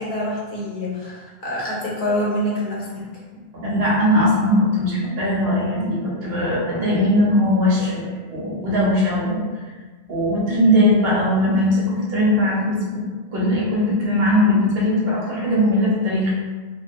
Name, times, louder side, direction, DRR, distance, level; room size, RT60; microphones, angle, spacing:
voice 1, 0.0-3.0, left 1 dB, 60° left, -6 dB, 0.7 m, -26 dB
voice 2, 3.5-9.4 10.1-13.0 13.3-16.3, left 1 dB, 70° right, -5 dB, 0.9 m, -19 dB
2.2 x 2.2 x 2.5 m, 1.4 s
omnidirectional pair, 1.1 m